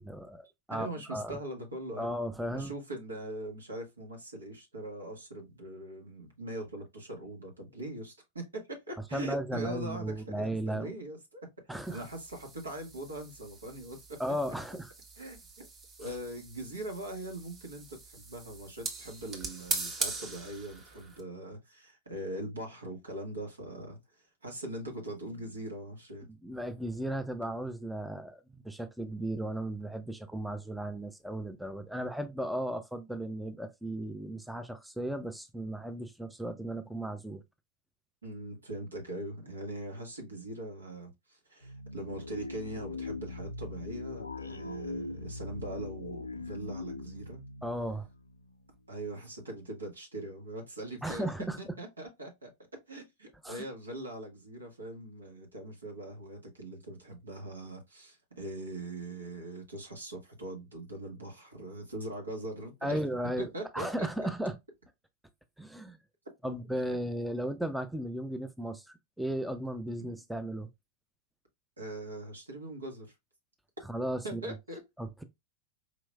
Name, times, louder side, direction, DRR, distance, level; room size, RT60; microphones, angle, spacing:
voice 1, 0.0-1.4 2.0-2.7 9.1-10.9 11.7-12.0 14.2-14.9 26.4-37.4 47.6-48.1 51.0-51.6 53.4-53.6 62.8-64.6 65.6-66.0 66.4-68.9 69.2-70.7 73.9-74.4 75.0-75.2, right 1 dB, ahead, 0.4 m, -35 dB
voice 2, 0.7-2.1 2.5-11.5 11.9-14.2 15.2-15.7 16.0-26.3 38.2-47.4 48.9-52.5 52.9-63.0 63.4-64.3 66.4-66.9 70.0-70.1 71.8-73.1 74.2-74.8, right 1 dB, 75° right, 1.4 m, -41 dB
sound 1, 11.8-21.2, right 3 dB, 25° right, 1.1 m, -41 dB
sound 2, 41.6-48.8, left 3 dB, 80° left, 0.3 m, -41 dB
4.7 x 3.0 x 2.2 m
figure-of-eight pair, 90°, 0 cm